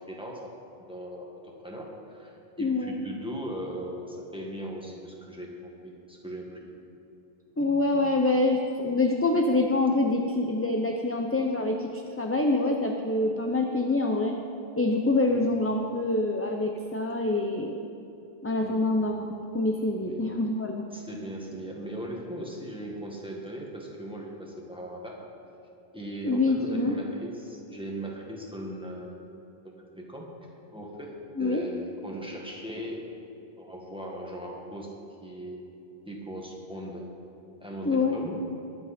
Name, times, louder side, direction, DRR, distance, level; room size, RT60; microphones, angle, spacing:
voice 1, 0.1-0.5 0.9-5.5 5.8-6.7 15.3-15.4 18.6-18.9 20.0-20.3 20.9-25.3 25.9-29.2 29.9-30.3 30.7-33.0 33.6-35.6 36.1-37.0 37.6-38.4, right 1 dB, 5° right, -2 dB, 1.8 m, -38 dB
voice 2, 2.6-3.1 7.6-14.3 14.8-17.8 18.4-20.8 26.2-26.9 31.4-31.6 37.8-38.3, left 2 dB, 15° left, 2 dB, 0.5 m, -26 dB
21.0 x 7.9 x 4.3 m, 2.9 s
omnidirectional pair, 1.0 m